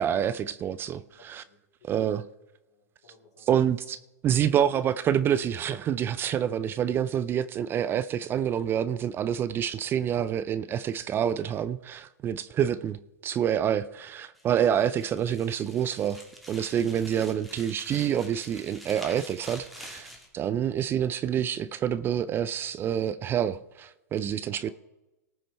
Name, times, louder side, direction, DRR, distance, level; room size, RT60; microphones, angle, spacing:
voice 1, 0.0-1.4 1.8-2.2 3.5-4.0 4.2-16.2 16.5-24.7, right 9 dB, 25° right, 0.4 m, -27 dB
voice 2, 1.2-2.0 2.7-3.5 24.6-24.7, left 3 dB, 70° left, 3.8 m, -60 dB
sound 1, 14.4-20.3, equal, ahead, 2.0 m, -46 dB
18.5 x 6.3 x 4.5 m
hypercardioid pair, 120°, 9 cm